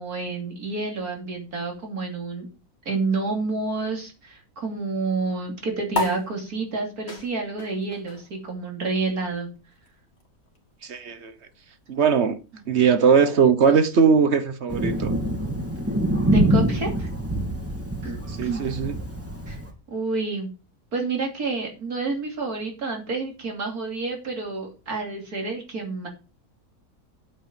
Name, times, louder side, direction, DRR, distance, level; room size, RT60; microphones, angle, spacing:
voice 1, 0.0-2.5 2.8-9.5 16.3-17.1 18.0-18.6 19.5-19.6 19.9-20.5 20.9-26.1, right 3 dB, 85° right, 3.4 m, -29 dB
sound 1, 5.9-12.7, left 2 dB, 45° left, 2.3 m, -36 dB
voice 2, 10.8-11.3 11.9-12.4 12.7-15.1 18.4-19.0, right 6 dB, 50° right, 1.3 m, -20 dB
Thunder, 14.7-19.7, right 1 dB, 10° right, 2.2 m, -25 dB
8.9 x 8.1 x 5.2 m
omnidirectional pair, 1.5 m